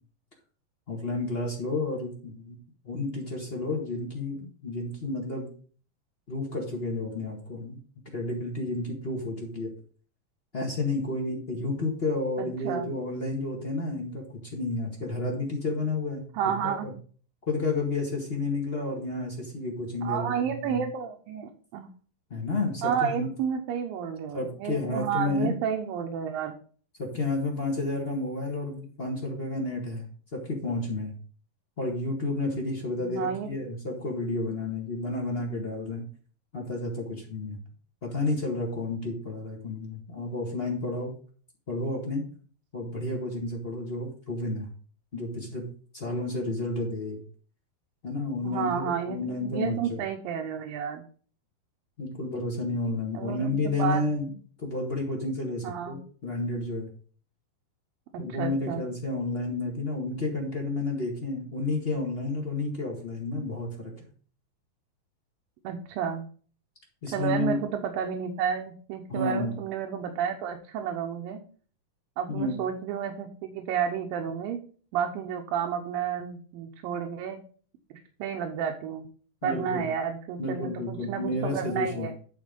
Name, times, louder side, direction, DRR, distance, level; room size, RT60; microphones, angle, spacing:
voice 1, 0.9-2.6 2.8-5.5 6.3-7.8 8.1-9.7 10.5-16.2 16.6-16.9 17.5-20.8 22.3-23.3 24.3-25.5 27.0-31.1 31.8-36.0 36.5-37.6 38.0-41.1 41.7-42.2 42.7-44.7 45.1-45.6 45.9-47.2 48.0-50.0 52.0-54.3 54.6-56.9 58.2-63.9 67.0-67.6 69.1-69.6 72.3-72.5 79.4-79.8 80.4-82.1, left 2 dB, 35° left, -1 dB, 0.9 m, -31 dB
voice 2, 12.4-12.9 16.3-16.9 20.0-21.9 22.8-26.5 33.0-33.5 48.4-51.0 53.1-54.0 55.6-56.0 58.1-58.8 65.6-66.3 67.1-71.4 72.2-74.6 74.9-77.4 77.9-79.1 79.4-82.1, right 8 dB, 80° right, 2 dB, 2.7 m, -31 dB
11.0 x 4.5 x 5.2 m, 0.43 s
omnidirectional pair, 4.1 m